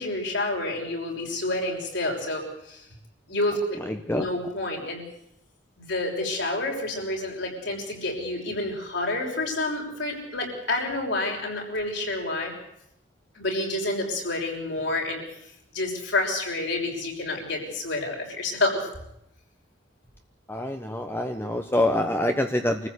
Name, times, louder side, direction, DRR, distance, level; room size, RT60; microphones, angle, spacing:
voice 1, 0.0-2.8 3.3-3.8 4.1-5.0 5.8-12.5 13.3-15.2 15.7-18.9, left 2 dB, 70° left, 0 dB, 6.3 m, -29 dB
voice 2, 3.9-4.3 20.5-22.9, left 1 dB, 10° left, 5 dB, 1.0 m, -26 dB
25.5 x 14.5 x 8.3 m, 0.80 s
head